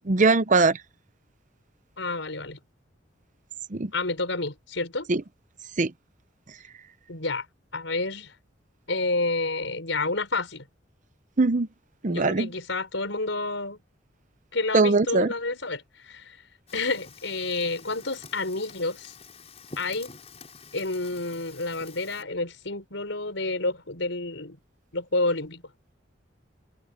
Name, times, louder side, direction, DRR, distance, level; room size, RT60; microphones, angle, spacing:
voice 1, 0.0-0.8 3.7-3.9 5.1-5.2 5.8-5.9 11.4-11.7 12.0-12.5 14.7-15.3, right 3 dB, 40° right, 0.8 m, -21 dB
voice 2, 2.0-2.6 3.9-5.1 7.1-7.5 7.7-8.3 8.9-10.7 12.1-13.8 14.5-16.4 16.7-19.1 19.8-20.1 20.7-24.6 24.9-25.6, left 3 dB, 80° left, 5.0 m, -29 dB
Fire, 16.7-22.2, left 4 dB, 35° left, 5.4 m, -48 dB
head